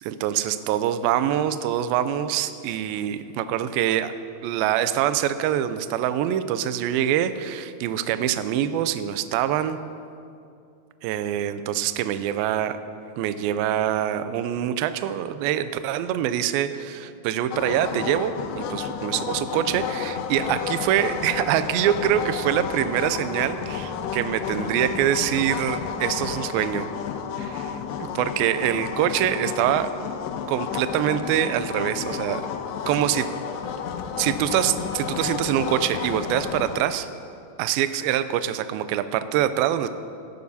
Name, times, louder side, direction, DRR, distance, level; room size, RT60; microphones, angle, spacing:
voice 1, 0.1-4.1 4.4-9.8 11.0-12.8 13.2-26.9 27.4-29.9 30.5-32.4 32.9-33.2 34.2-37.1 37.6-39.9, right 11 dB, 80° right, 11 dB, 2.2 m, -25 dB
sound 1, 17.5-36.9, left 7 dB, 90° left, 2.7 m, -31 dB
17.5 x 11.5 x 2.7 m, 2.5 s
omnidirectional pair, 4.6 m